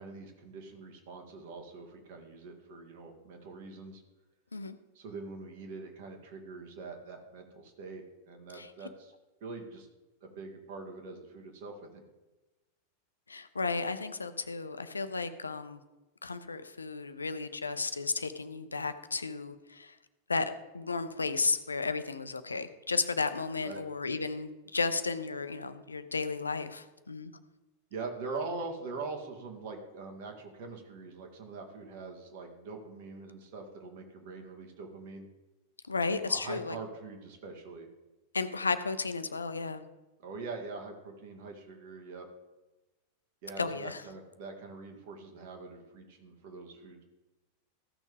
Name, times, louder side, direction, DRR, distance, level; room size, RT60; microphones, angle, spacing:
voice 1, 0.0-4.0 4.9-9.1 9.4-9.9 10.2-12.0 23.6-23.8 27.9-35.3 36.1-37.9 40.2-42.3 43.4-47.0, right 3 dB, 50° right, 3 dB, 1.9 m, -43 dB
voice 2, 13.3-15.8 16.2-19.9 20.3-27.3 35.9-36.8 38.3-39.8 43.6-44.0, left 4 dB, 75° left, 11 dB, 0.6 m, -33 dB
15.0 x 6.2 x 3.5 m, 1.1 s
figure-of-eight pair, 90°, 0 cm